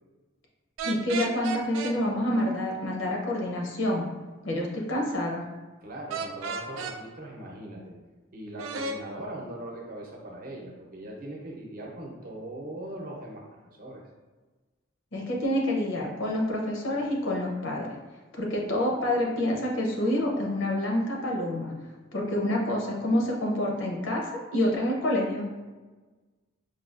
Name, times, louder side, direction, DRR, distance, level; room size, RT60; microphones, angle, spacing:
voice 1, 0.8-4.0 4.4-5.4 15.1-17.9 18.4-21.7 22.1-25.4, left 1 dB, 75° left, -1 dB, 0.7 m, -27 dB
sound 1, 0.8-2.0 6.1-7.0 8.6-9.0, right 4 dB, 85° right, 0.3 m, -33 dB
voice 2, 5.8-8.0 8.3-14.0, right 1 dB, 45° right, -2 dB, 0.7 m, -40 dB
4.7 x 2.3 x 2.4 m, 1.3 s
head